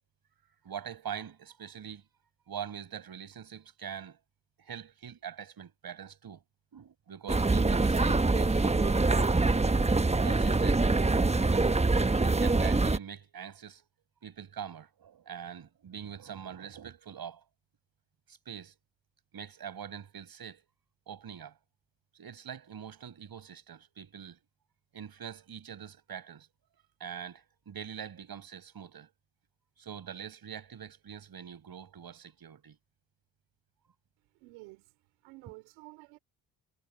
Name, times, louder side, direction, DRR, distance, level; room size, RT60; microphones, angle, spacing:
voice 1, 0.6-2.0 2.5-4.2 4.6-6.4 6.7-9.0 10.2-10.9 12.2-13.9 14.2-17.4 18.3-18.7 19.3-20.7 21.1-21.6 22.1-24.4 24.9-26.5 27.0-29.1 29.8-32.8, right 8 dB, 55° right, 5.9 m, -43 dB
sound 1, 7.3-13.0, right 3 dB, 15° right, 1.2 m, -25 dB
voice 2, 34.3-34.9 35.2-36.2, right 25 dB, 85° right, 4.0 m, -51 dB
hypercardioid pair, 50°, 44 cm